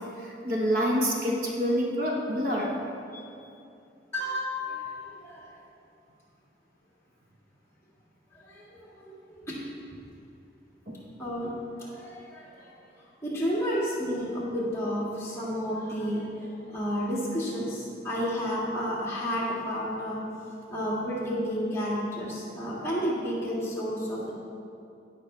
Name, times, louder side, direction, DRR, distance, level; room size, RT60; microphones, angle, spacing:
voice 1, 0.2-2.7 10.9-11.0, equal, 50° right, -3 dB, 1.3 m, -27 dB
voice 2, 4.1-4.9 5.2-5.5 8.3-9.9 11.2-11.5 11.8-12.7 13.2-20.2 20.7-24.3, equal, 15° left, -7 dB, 1.9 m, -31 dB
16.5 x 5.9 x 3.3 m, 2.6 s
head